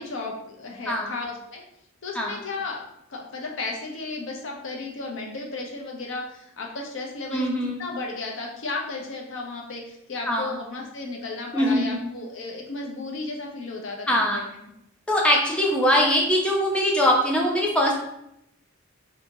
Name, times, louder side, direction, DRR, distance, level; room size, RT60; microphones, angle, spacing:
voice 1, 0.0-1.6 2.0-2.8 3.1-14.4, left 3 dB, 65° left, 0 dB, 0.6 m, -34 dB
voice 2, 7.3-7.8 10.3-10.5 11.5-12.1 14.1-14.4 15.1-17.9, equal, 5° left, -2 dB, 0.5 m, -22 dB
2.7 x 2.7 x 2.6 m, 0.77 s
head